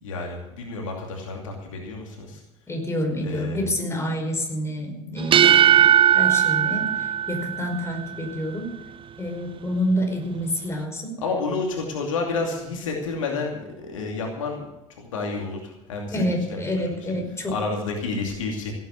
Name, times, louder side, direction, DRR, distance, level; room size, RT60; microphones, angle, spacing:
voice 1, 0.0-2.4 3.2-3.6 11.2-14.7 15.0-16.6 17.1-17.2 17.5-18.7, left 3 dB, 75° left, 1 dB, 2.7 m, -30 dB
voice 2, 2.7-5.9 6.1-8.8 9.2-11.2 16.1-17.6, equal, 15° left, 2 dB, 5.2 m, -28 dB
sound 1, 5.2-8.0, right 10 dB, 30° right, 0.6 m, -18 dB
17.0 x 9.3 x 7.0 m, 0.95 s
figure-of-eight pair, 65°, 17 cm